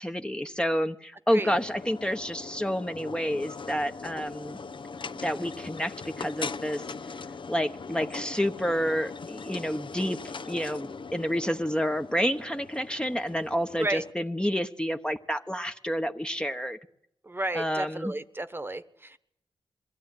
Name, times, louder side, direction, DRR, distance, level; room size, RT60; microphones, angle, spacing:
voice 1, 0.0-4.6 5.2-6.8 7.5-10.2 10.4-16.8 17.5-18.1, equal, 10° left, 7 dB, 1.1 m, -29 dB
sound 1, 1.5-14.1, left 4 dB, 60° left, 0.9 m, -40 dB
voice 2, 17.3-19.2, right 2 dB, 25° right, 11 dB, 1.2 m, -32 dB
22.0 x 15.5 x 9.7 m, 0.80 s
cardioid pair, 60°, 10 cm